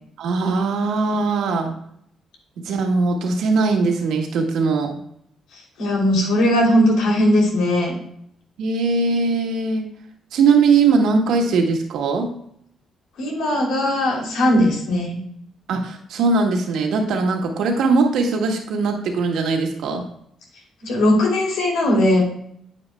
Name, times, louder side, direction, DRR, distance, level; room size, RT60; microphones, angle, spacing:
voice 1, 0.2-1.7 2.6-5.0 8.6-9.9 10.3-12.4 15.7-20.1, right 4 dB, 80° right, 2 dB, 1.7 m, -20 dB
voice 2, 5.8-8.0 13.2-15.2 20.8-22.2, left 1 dB, 85° left, -1 dB, 2.9 m, -18 dB
9.7 x 9.0 x 2.2 m, 0.69 s
cardioid pair, 90°, 0 cm